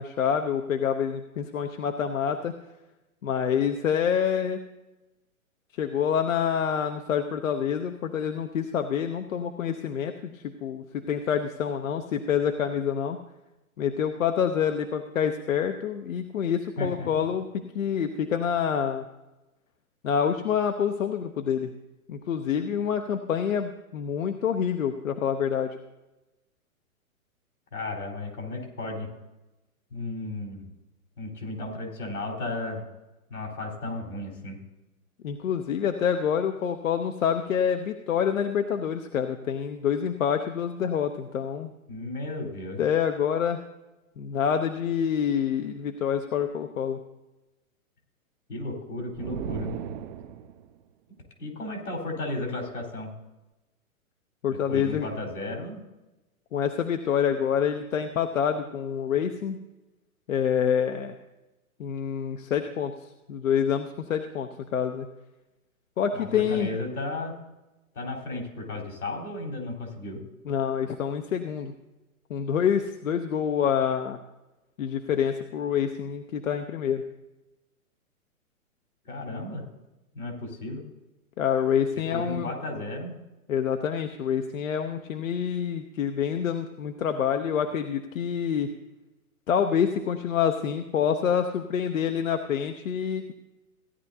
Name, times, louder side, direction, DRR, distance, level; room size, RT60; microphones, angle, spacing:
voice 1, 0.0-2.5 3.2-4.6 5.8-13.2 13.8-19.0 20.0-21.7 22.1-25.8 35.2-41.7 42.8-43.6 44.2-47.0 54.4-55.1 56.5-59.6 60.3-61.1 61.8-62.9 63.3-65.1 66.0-66.7 70.5-71.7 72.3-74.2 74.8-77.0 81.4-82.5 83.5-88.7 89.5-93.3, left 8 dB, 65° left, 6 dB, 0.9 m, -27 dB
voice 2, 16.8-17.1 27.7-29.1 29.9-30.7 31.2-32.8 33.3-34.6 41.9-42.8 48.5-49.7 51.4-53.1 54.5-55.8 66.1-67.3 67.9-70.2 79.0-79.6 80.1-80.8 81.9-83.2, left 2 dB, 85° left, 0 dB, 4.2 m, -34 dB
sound 1, 49.1-50.7, right 8 dB, 30° right, 0.6 m, -36 dB
16.5 x 10.5 x 2.7 m, 1.0 s
figure-of-eight pair, 120°, 43 cm